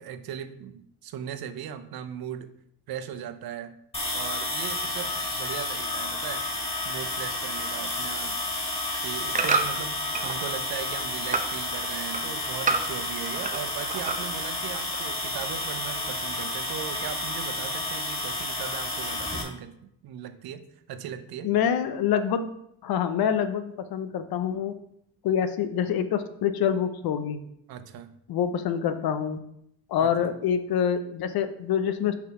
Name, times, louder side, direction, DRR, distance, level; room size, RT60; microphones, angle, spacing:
voice 1, 0.0-2.5 2.9-3.8 4.1-6.4 6.8-8.4 9.0-21.5 27.7-28.1 30.0-30.3, right 9 dB, 60° right, 10 dB, 0.8 m, -38 dB
sound 1, 3.9-19.4, left 2 dB, 15° left, 2.0 m, -31 dB
sound 2, 8.6-10.4 10.8-11.5 11.9-13.6 13.9-14.5 14.9-15.0, right 4 dB, 20° right, 0.8 m, -29 dB
voice 2, 21.4-22.5 22.8-24.7 25.2-27.4 28.3-29.4 29.9-32.2, left 8 dB, 60° left, 10 dB, 0.8 m, -26 dB
5.8 x 4.0 x 5.9 m, 0.74 s
cardioid pair, 100°, 41 cm